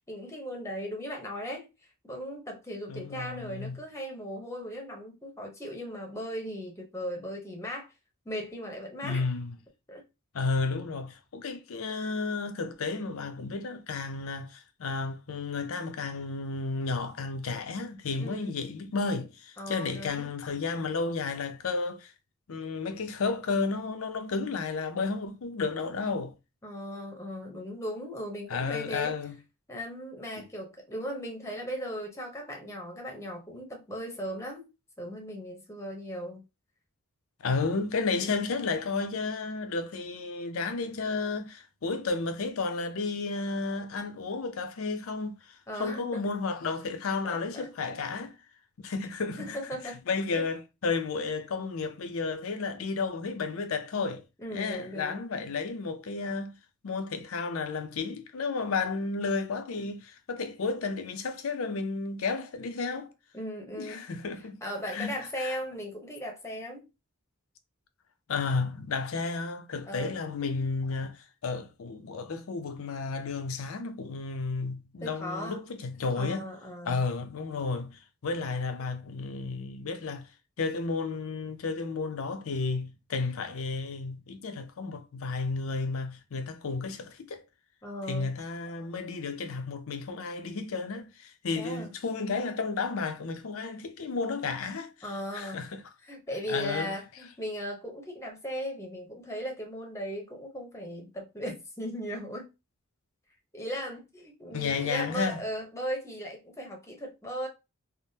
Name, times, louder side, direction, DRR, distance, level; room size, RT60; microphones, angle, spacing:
voice 1, 0.0-1.7 2.0-7.9 8.2-9.2 9.9-10.0 18.2-18.5 19.6-20.3 26.6-29.1 29.7-34.7 35.0-36.4 38.2-38.4 45.7-46.2 47.2-47.7 49.4-50.0 50.3-50.4 54.4-55.2 63.3-64.0 64.6-66.9 69.9-70.1 75.0-75.6 76.2-77.0 87.8-88.3 91.5-91.9 95.0-95.6 96.0-102.5 103.5-107.5, equal, 15° left, 0.8 m, -37 dB
voice 2, 2.9-3.8 9.0-9.6 10.3-22.1 22.5-26.4 28.5-29.3 30.4-30.5 37.4-48.4 48.8-49.6 50.1-54.2 54.5-56.6 56.8-63.1 63.8-64.6 64.9-65.6 68.3-76.5 76.9-80.3 80.6-87.4 88.1-95.8 96.5-96.9 104.5-105.4, left 4 dB, 70° left, 0.5 m, -32 dB
3.4 x 2.0 x 2.7 m
head